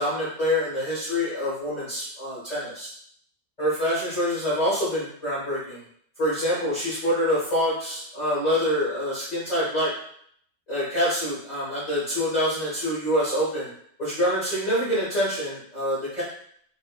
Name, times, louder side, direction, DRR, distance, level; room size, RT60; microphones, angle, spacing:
voice 1, 0.0-2.9 3.6-5.8 6.2-9.9 10.7-13.7 14.0-16.2, equal, 30° left, -12 dB, 1.3 m, -26 dB
3.9 x 2.5 x 2.2 m, 0.64 s
omnidirectional pair, 1.5 m